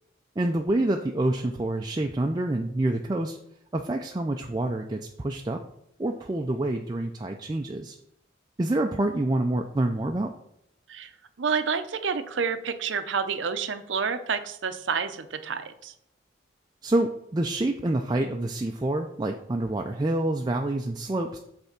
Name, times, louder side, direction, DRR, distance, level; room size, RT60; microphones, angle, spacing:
voice 1, 0.4-3.4 3.7-5.6 6.0-8.0 8.6-10.3 16.8-21.4, right 1 dB, 20° right, 3 dB, 0.4 m, -27 dB
voice 2, 11.4-15.9, right 6 dB, 75° right, 10 dB, 0.6 m, -29 dB
8.1 x 3.4 x 5.8 m, 0.76 s
head